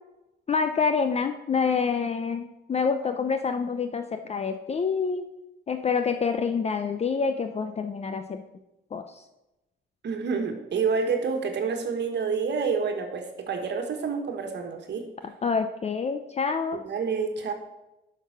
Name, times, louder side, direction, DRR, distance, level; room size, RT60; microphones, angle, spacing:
voice 1, 0.5-5.2 5.7-8.4 8.9-9.2 15.4-16.8, left 5 dB, 30° left, 8 dB, 0.5 m, -27 dB
voice 2, 10.0-15.0 16.8-17.5, right 5 dB, 60° right, 4 dB, 1.4 m, -28 dB
7.0 x 6.0 x 5.9 m, 0.98 s
cardioid pair, 90°, 20 cm